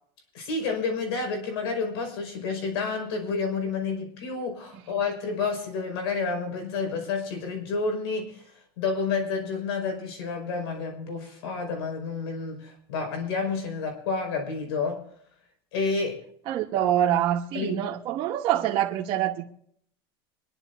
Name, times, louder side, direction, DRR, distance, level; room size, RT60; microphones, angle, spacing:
voice 1, 0.3-8.4 8.8-15.0 15.7-16.2 17.5-17.8, left 4 dB, 85° left, 3 dB, 5.2 m, -30 dB
voice 2, 16.5-19.4, right 11 dB, 40° right, -2 dB, 1.2 m, -25 dB
26.0 x 11.0 x 2.7 m, 0.65 s
supercardioid pair, 135°, 13 cm